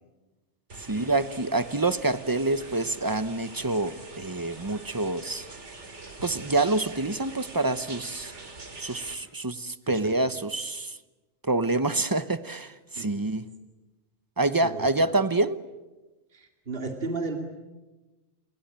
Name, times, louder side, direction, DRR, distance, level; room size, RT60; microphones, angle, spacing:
sound 1, 0.7-9.1, right 3 dB, 85° right, 3.1 m, -44 dB
voice 1, 0.8-5.5 6.2-8.3 8.8-11.0 11.4-13.5 14.4-15.6, right 2 dB, 20° right, 13 dB, 0.9 m, -27 dB
voice 2, 9.9-10.2 13.0-13.2 14.6-14.9 16.3-17.4, right 3 dB, 55° right, 4 dB, 2.8 m, -34 dB
28.0 x 23.5 x 8.9 m, 1.1 s
omnidirectional pair, 1.2 m